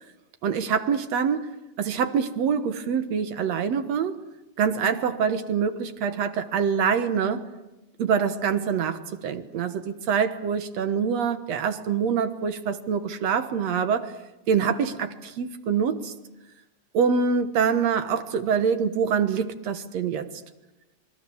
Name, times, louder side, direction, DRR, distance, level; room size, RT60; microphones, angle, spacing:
voice 1, 0.4-1.5 1.8-4.2 4.6-7.4 8.0-14.1 14.5-15.1 15.4-16.1 16.9-20.3, right 6 dB, 65° right, 9 dB, 2.3 m, -25 dB
26.5 x 22.0 x 7.1 m, 1.0 s
omnidirectional pair, 3.4 m